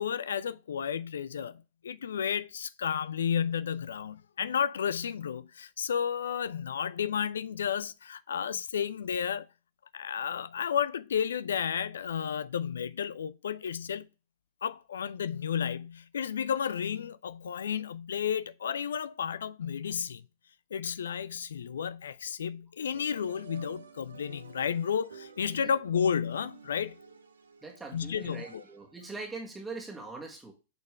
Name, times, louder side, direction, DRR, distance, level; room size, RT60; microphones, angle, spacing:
voice 1, 0.0-9.5 9.9-14.1 14.6-20.3 20.7-27.0 27.9-28.6, left 8 dB, 70° left, 0.4 m, -32 dB
sound 1, 22.9-29.0, right 6 dB, 75° right, 0.8 m, -51 dB
voice 2, 27.6-30.5, right 3 dB, 10° right, 1.6 m, -42 dB
7.9 x 4.4 x 3.4 m
figure-of-eight pair, 100°, 0 cm